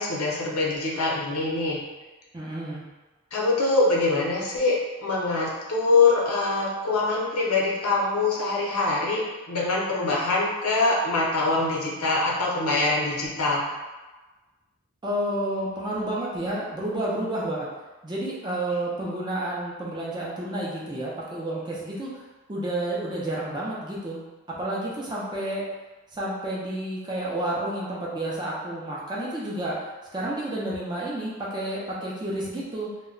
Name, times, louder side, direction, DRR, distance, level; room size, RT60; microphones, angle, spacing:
voice 1, 0.0-1.8 3.3-13.7, left 3 dB, 85° left, -3 dB, 0.7 m, -24 dB
voice 2, 2.3-2.8 15.0-17.7 18.0-22.2 22.5-24.2 24.5-25.6 26.1-32.9, right 1 dB, 20° right, -5 dB, 0.4 m, -30 dB
2.1 x 2.1 x 3.7 m, 1.2 s
head